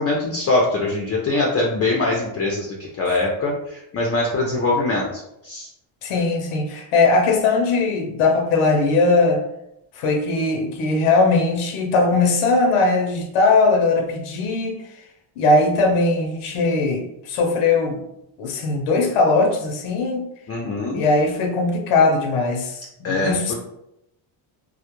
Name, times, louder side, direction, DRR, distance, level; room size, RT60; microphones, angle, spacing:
voice 1, 0.0-5.7 20.5-21.0 23.0-23.5, left 2 dB, 35° left, -1 dB, 0.4 m, -23 dB
voice 2, 6.0-9.4 10.0-14.8 15.4-18.0 18.4-20.3 20.9-23.5, left 3 dB, 80° left, 3 dB, 0.6 m, -19 dB
2.2 x 2.0 x 2.9 m, 0.83 s
cardioid pair, 105°, 49 cm